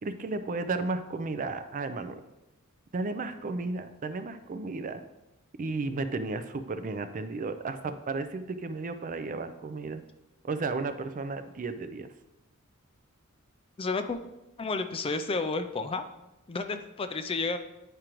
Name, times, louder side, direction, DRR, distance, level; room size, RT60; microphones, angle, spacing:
voice 1, 0.0-2.2 2.9-5.0 5.6-10.0 10.4-12.1, right 3 dB, 40° right, 9 dB, 0.4 m, -33 dB
voice 2, 13.8-14.2 14.6-16.0 16.5-17.6, left 3 dB, 25° left, 9 dB, 0.4 m, -31 dB
9.0 x 5.0 x 3.0 m, 0.95 s
head